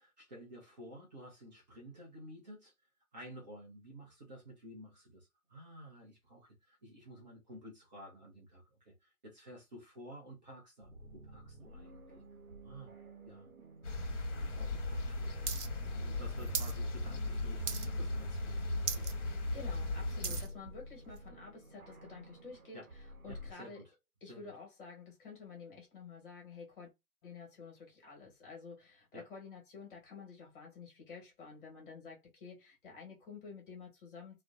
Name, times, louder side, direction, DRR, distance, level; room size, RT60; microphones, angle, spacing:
voice 1, 0.0-2.7 3.1-12.2 12.6-12.9 13.3-13.5 14.4-15.5 15.8-19.1 22.7-22.9 23.3-23.9 24.3-24.5 29.1-29.3, equal, 30° right, 0.6 m, -52 dB
sound 1, 10.8-23.5, equal, 65° right, 1.0 m, -52 dB
sound 2, 13.8-20.5, left 2 dB, 50° left, 0.9 m, -37 dB
sound 3, 15.5-15.7 15.9-16.8 17.1-17.4 17.7-18.1 18.5-18.6 18.8-19.1 19.6-20.5 21.2-21.3, right 7 dB, 90° right, 0.6 m, -38 dB
voice 2, 19.2-23.8 24.2-26.9 27.2-34.4, left 5 dB, 35° left, 1.2 m, -50 dB
2.5 x 2.1 x 2.4 m
figure-of-eight pair, 140°, 45 cm